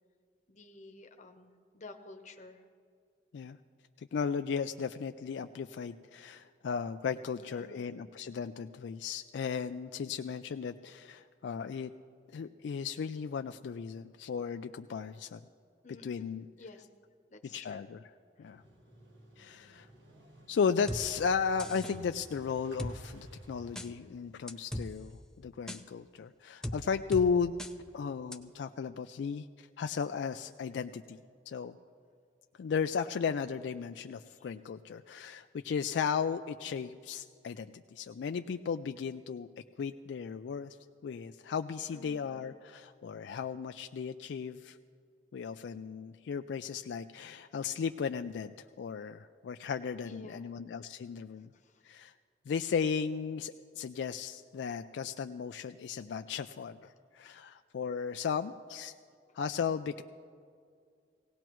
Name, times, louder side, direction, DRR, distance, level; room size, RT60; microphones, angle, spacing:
voice 1, 0.5-2.6 7.4-8.0 15.8-16.9 17.3-17.9 18.4-18.5 34.3-34.5 41.9-42.4 50.0-50.5 51.4-51.8 57.3-57.4, left 3 dB, 45° left, 5 dB, 0.9 m, -52 dB
voice 2, 4.0-11.9 12.3-15.4 16.0-16.4 17.5-18.0 18.4-18.6 19.4-19.9 20.5-27.5 27.9-31.8 32.6-39.5 39.8-40.8 41.0-44.8 45.3-51.5 51.8-52.1 52.5-58.9 59.3-60.0, left 6 dB, 75° left, 8 dB, 0.3 m, -35 dB
Motorcycle, 18.4-25.2, equal, 85° right, 1.7 m, -54 dB
sound 1, 20.9-21.0 21.6-21.9 22.8-22.9 23.8-23.9 24.5-24.9 25.7-25.8 26.6-26.8 27.1-27.3 27.6-27.7 28.3-28.4, left 1 dB, 5° left, 0.5 m, -37 dB
18.5 x 17.5 x 3.1 m, 2.2 s
head